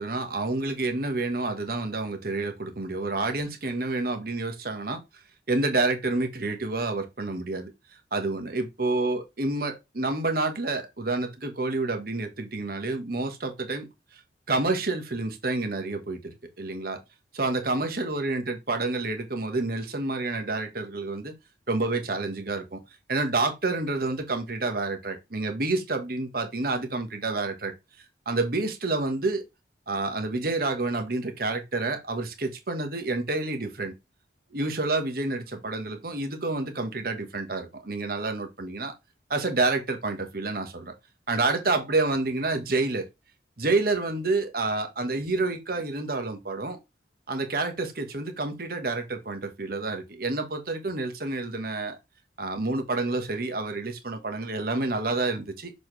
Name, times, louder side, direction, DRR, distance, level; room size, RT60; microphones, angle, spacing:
voice 1, 0.0-5.0 5.5-7.7 8.1-13.9 14.1-14.2 14.5-17.0 17.3-21.3 21.7-22.8 23.1-27.7 28.2-29.4 29.9-33.9 34.5-38.9 39.3-40.9 41.3-43.1 43.6-46.8 47.3-52.0 52.4-55.7, right 3 dB, 55° right, 1.4 m, -28 dB
6.8 x 4.3 x 3.3 m
head